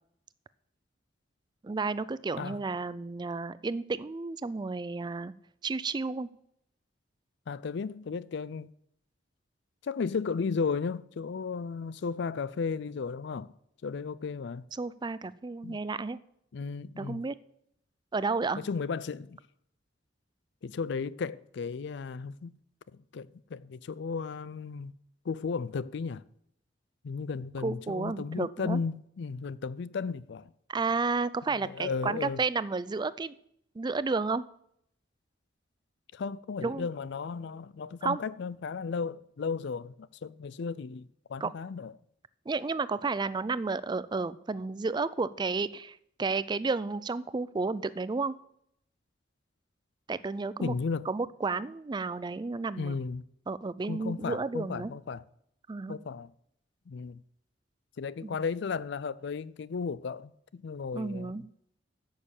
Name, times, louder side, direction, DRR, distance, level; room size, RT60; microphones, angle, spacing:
voice 1, 1.6-5.3 5.6-6.3 14.8-16.2 17.0-17.3 18.1-18.6 27.6-28.8 30.7-33.4 33.8-34.4 36.6-36.9 38.0-38.2 41.4-41.5 42.5-48.3 50.1-50.7 51.1-53.0 53.5-54.9 55.7-56.0 58.2-58.4 60.9-61.4, right 4 dB, 25° right, 0.4 m, -32 dB
voice 2, 7.5-8.7 9.8-13.5 13.8-14.7 15.6-15.8 16.5-17.2 18.6-19.4 20.6-22.5 22.9-24.9 25.2-26.2 27.0-30.5 31.6-32.4 36.1-41.9 50.6-51.1 52.8-53.2 53.9-55.2 55.9-56.3 56.9-57.2 58.0-61.4, left 5 dB, 65° left, 0.4 m, -34 dB
10.0 x 6.6 x 7.1 m
head